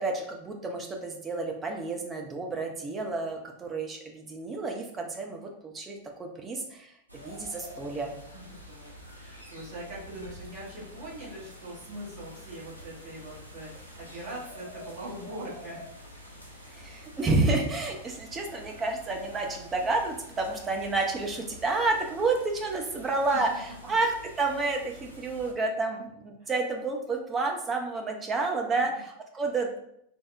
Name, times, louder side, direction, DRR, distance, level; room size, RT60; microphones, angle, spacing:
voice 1, 0.0-8.1 16.6-23.5 23.8-29.8, right 3 dB, 20° right, 2 dB, 0.5 m, -30 dB
sound 1, 7.1-25.5, equal, 85° right, 0.5 m, -48 dB
voice 2, 8.3-15.8 16.4-16.7 23.0-23.6 26.4-26.5 28.7-28.8, right 1 dB, 45° right, -5 dB, 1.1 m, -42 dB
3.3 x 2.0 x 2.5 m, 0.75 s
figure-of-eight pair, 90°, 0 cm